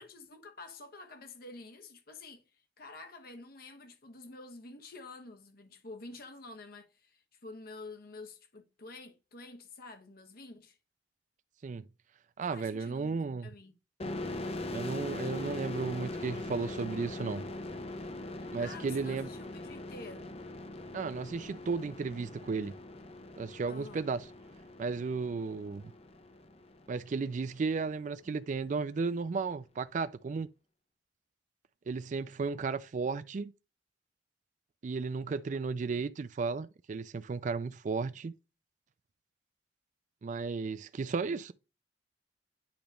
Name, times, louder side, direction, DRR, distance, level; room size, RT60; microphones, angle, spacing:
voice 1, 0.0-2.4 2.8-10.8 12.5-13.8 18.3-20.3 23.7-24.1, left 3 dB, 55° left, 1.1 m, -49 dB
voice 2, 12.4-13.5 14.7-17.4 18.5-19.3 20.9-22.7 23.4-24.2 24.8-25.8 26.9-30.5 31.9-33.5 34.8-38.3 40.2-41.5, right 4 dB, 45° right, 0.3 m, -34 dB
sound 1, 14.0-27.4, left 2 dB, 35° left, 0.7 m, -41 dB
8.7 x 3.0 x 5.1 m
head